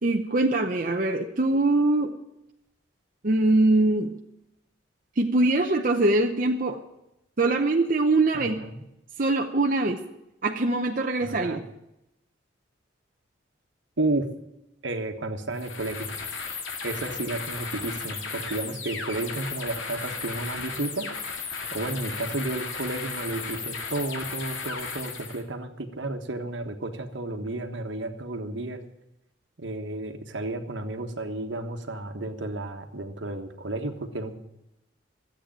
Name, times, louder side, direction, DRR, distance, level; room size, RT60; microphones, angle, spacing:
voice 1, 0.0-2.1 3.2-4.1 5.2-6.8 7.4-8.6 9.2-10.0 10.4-11.6, right 2 dB, 45° right, 2 dB, 0.8 m, -23 dB
voice 2, 8.3-8.9 11.2-11.6 14.0-14.3 14.8-16.1 16.8-21.1 21.7-28.8 29.6-34.4, right 2 dB, 70° right, 6 dB, 1.4 m, -32 dB
sound 1, 15.5-25.4, left 5 dB, 85° left, 2.2 m, -35 dB
13.0 x 8.4 x 8.9 m, 0.87 s
head